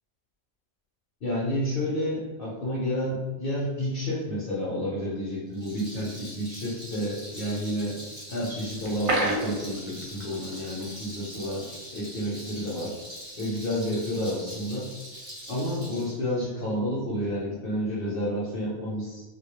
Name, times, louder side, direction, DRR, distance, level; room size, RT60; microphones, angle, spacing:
voice 1, 1.2-8.0 8.3-13.0 13.4-14.9 15.5-19.2, equal, 60° left, -7 dB, 0.8 m, -30 dB
Rattle, 5.5-16.1, equal, 25° right, 0.9 m, -43 dB
sound 1, 8.8-10.5 10.8-10.9 11.3-11.5, right 1 dB, 55° right, 0.4 m, -28 dB
2.2 x 2.2 x 2.9 m, 1.2 s
omnidirectional pair, 1.1 m